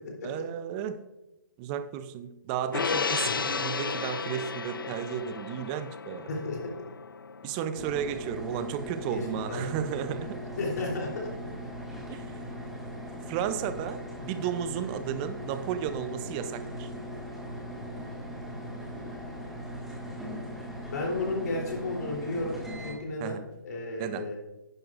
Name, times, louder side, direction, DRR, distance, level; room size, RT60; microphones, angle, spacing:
voice 1, 0.2-1.0 1.6-6.3 7.4-10.4 12.1-12.4 13.3-16.9 23.2-23.4 24.0-24.3, right 9 dB, 20° right, 12 dB, 0.5 m, -33 dB
Gong, 2.7-9.3 9.7-9.8, left 5 dB, 90° left, 0.4 m, -34 dB
voice 2, 6.3-6.6 9.1-9.6 10.6-11.3 20.9-24.4, left 2 dB, 55° left, -1 dB, 3.3 m, -33 dB
sound 1, 7.7-22.9, equal, 5° right, 1.9 m, -39 dB
11.0 x 9.3 x 2.5 m, 1.0 s
hypercardioid pair, 145°, 11 cm